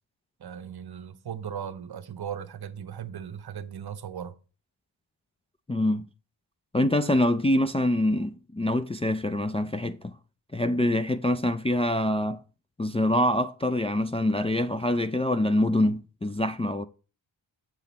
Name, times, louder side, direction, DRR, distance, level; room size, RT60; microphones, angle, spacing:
voice 1, 0.4-4.3, right 8 dB, 55° right, 0.8 m, -37 dB
voice 2, 5.7-6.1 6.7-10.1 10.5-12.4 12.8-16.8, left 1 dB, 15° left, 0.3 m, -25 dB
7.5 x 5.8 x 4.0 m
wide cardioid pair, 95°, 47 cm